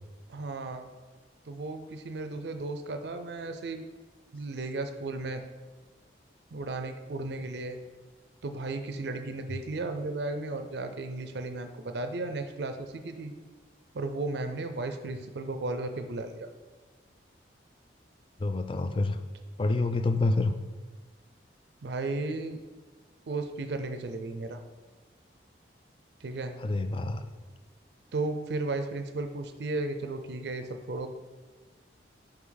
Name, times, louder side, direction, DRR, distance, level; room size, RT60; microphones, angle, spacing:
voice 1, 0.3-0.8 1.5-3.8 4.3-5.4 6.5-7.8 8.4-13.3 13.9-16.5 21.8-22.6 23.3-24.6 26.2-26.6 28.1-31.1, right 2 dB, 70° right, 7 dB, 0.5 m, -34 dB
voice 2, 18.4-19.2 19.6-20.6 26.6-27.3, left 2 dB, 30° left, 10 dB, 0.3 m, -27 dB
6.0 x 5.1 x 4.0 m, 1.4 s
head